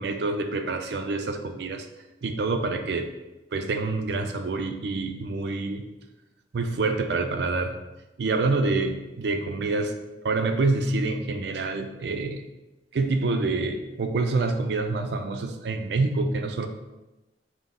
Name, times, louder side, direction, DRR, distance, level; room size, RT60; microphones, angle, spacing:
voice 1, 0.0-1.9 2.2-3.1 3.5-5.9 6.5-7.8 8.2-10.0 10.2-12.4 12.9-16.7, right 3 dB, 65° right, 7 dB, 0.4 m, -27 dB
5.8 x 2.0 x 3.7 m, 1.0 s
head